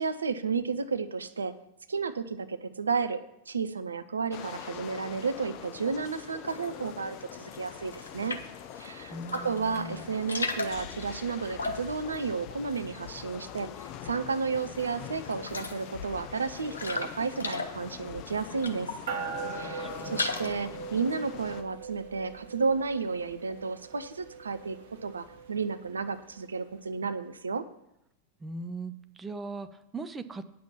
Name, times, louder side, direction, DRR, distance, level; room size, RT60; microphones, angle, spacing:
voice 1, 0.0-1.5 1.9-3.2 3.5-8.4 8.7-19.0 19.5-24.8 25.0-27.6, right 5 dB, 75° right, 10 dB, 0.6 m, -32 dB
sound 1, 4.3-21.6, left 10 dB, 40° left, 0.7 m, -44 dB
sound 2, 6.4-7.1 7.4-8.6 9.1-9.7 10.0-13.4 13.7-14.4 14.7-14.8 15.2-19.2 19.6-20.7, left 3 dB, 75° left, 1.0 m, -37 dB
voice 2, 9.1-10.1 19.6-20.3 28.4-30.4, right 3 dB, 15° right, 10 dB, 0.6 m, -40 dB
sound 3, 19.1-26.8, right 6 dB, 60° right, 1.3 m, -41 dB
9.5 x 6.2 x 7.1 m, 0.81 s
figure-of-eight pair, 90°, 0 cm